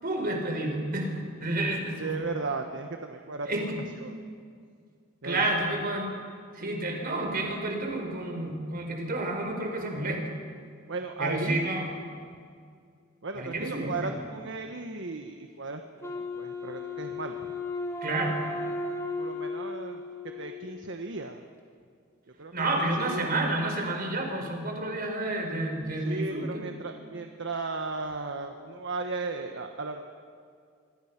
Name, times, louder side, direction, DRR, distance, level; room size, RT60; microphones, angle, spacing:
voice 1, 0.0-2.2 3.5-3.8 5.2-6.1 6.5-10.2 11.2-11.9 13.3-14.2 18.0-18.4 22.5-26.6, right 2 dB, 45° right, 3 dB, 4.5 m, -30 dB
voice 2, 2.0-3.5 4.0-4.1 5.2-5.4 10.9-11.7 13.2-17.3 19.2-20.0 20.4-21.4 22.4-23.3 26.0-30.0, right 3 dB, 65° right, 5 dB, 1.3 m, -36 dB
Wind instrument woodwind instrument, 16.0-21.0, left 3 dB, 15° left, 3.5 m, -35 dB
24.5 x 24.5 x 6.0 m, 2.2 s
head